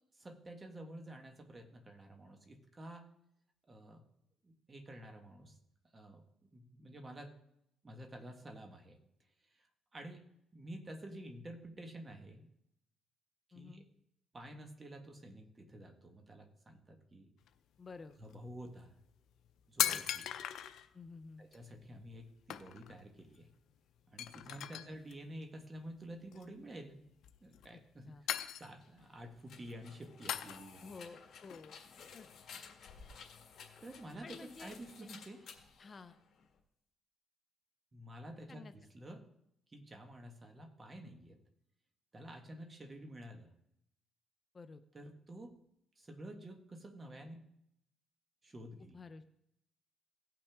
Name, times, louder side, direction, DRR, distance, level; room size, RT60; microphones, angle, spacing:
voice 1, 0.1-3.1 3.7-4.1 4.4-5.6 5.9-6.2 6.5-7.3 7.8-9.0 9.5-10.2 10.5-12.5 13.5-13.8 14.3-17.3 18.2-19.0 19.7-20.3 21.4-23.5 24.1-27.0 27.4-30.9 33.8-35.5 37.9-39.3 39.7-41.4 42.1-43.5 44.9-45.6 46.0-47.4 48.4-49.0, right 1 dB, 25° right, 5 dB, 1.5 m, -50 dB
voice 2, 13.5-13.9 17.8-18.2 19.9-20.0 20.9-21.4 24.8-25.0 28.1-28.2 30.8-31.8 32.1-32.3 34.2-35.1 35.8-36.2 38.5-38.7 44.5-44.8 48.8-49.2, left 4 dB, 35° left, 10 dB, 0.6 m, -52 dB
sound 1, 17.4-17.5 18.1-18.3 19.1-19.2 19.4-20.9 21.5-21.6 22.0-22.2 22.5-23.0 23.3-23.4 23.7-23.8 24.2-25.1 26.3-26.7 27.2-27.9 28.3-29.0 29.4-29.7 30.3-30.9 31.3-32.6 33.0-34.9, left 11 dB, 80° left, 0.5 m, -40 dB
sound 2, 28.8-36.6, left 6 dB, 60° left, 1.7 m, -55 dB
17.5 x 5.9 x 3.5 m, 0.79 s
cardioid pair, 90°, 0 cm